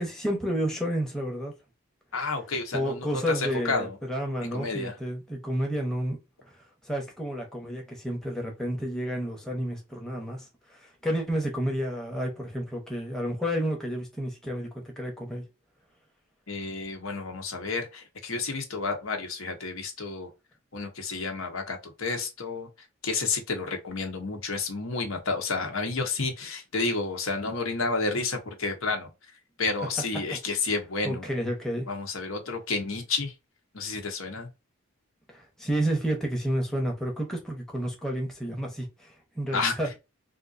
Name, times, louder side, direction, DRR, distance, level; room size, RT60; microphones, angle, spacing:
voice 1, 0.0-1.5 2.7-6.2 6.5-6.6 6.8-15.4 31.0-31.9 35.3-39.9, equal, ahead, 0.8 m, -30 dB
voice 2, 2.1-4.0 4.5-4.9 16.5-20.3 20.7-22.7 23.0-29.1 29.6-31.4 31.9-33.3 33.7-34.5 39.5-40.0, left 4 dB, 75° left, 1.0 m, -30 dB
3.7 x 2.5 x 2.5 m
head